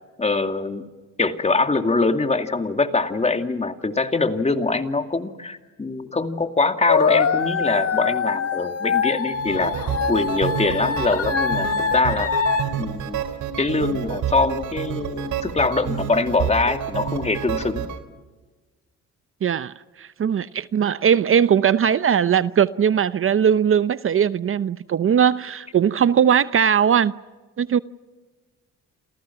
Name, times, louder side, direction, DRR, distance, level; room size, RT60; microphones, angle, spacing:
voice 1, 0.2-0.8 1.2-9.8 10.1-12.3 12.8-13.2 13.6-17.9, left 3 dB, 20° left, 7 dB, 2.4 m, -23 dB
sound 1, 6.9-12.6, left 6 dB, 55° left, 2.7 m, -24 dB
sound 2, 9.3-18.0, right 8 dB, 75° right, 3.1 m, -29 dB
voice 2, 19.4-27.1 27.6-27.8, right 8 dB, 45° right, 15 dB, 0.8 m, -19 dB
29.5 x 28.5 x 5.9 m, 1.3 s
cardioid pair, 90°, 30 cm